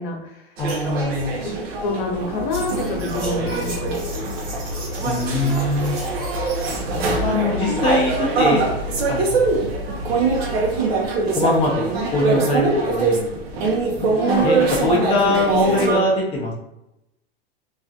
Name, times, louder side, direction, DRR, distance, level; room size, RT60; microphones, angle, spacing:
voice 1, 0.0-0.4 1.4-1.5 1.8-4.6 14.2-14.7, left 2 dB, 60° left, 1 dB, 0.7 m, -27 dB
voice 2, 0.6-1.3 5.1-6.0 7.2-8.7 9.1-9.6 11.3-13.3 14.0-16.5, left 2 dB, 20° left, -4 dB, 0.5 m, -22 dB
sound 1, 0.6-16.0, right 3 dB, 90° right, 0.7 m, -23 dB
sound 2, 2.5-10.8, left 2 dB, 45° right, 0.8 m, -32 dB
2.4 x 2.1 x 2.7 m, 0.87 s
supercardioid pair, 130°, 30 cm